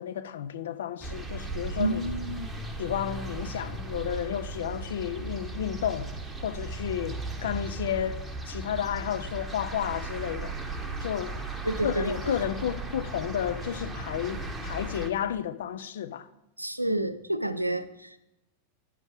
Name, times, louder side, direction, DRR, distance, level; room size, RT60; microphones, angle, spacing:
voice 1, 0.0-2.0 2.8-6.1 6.4-8.2 8.5-10.5 11.0-11.4 11.8-16.3, left 9 dB, 60° left, 0.5 m, -32 dB
sound 1, 1.0-15.1, right 2 dB, 5° right, 0.9 m, -36 dB
voice 2, 1.8-2.5 11.6-12.4 16.6-18.2, right 1 dB, 90° right, 0.4 m, -30 dB
9.7 x 5.3 x 4.8 m
figure-of-eight pair, 90°, 0 cm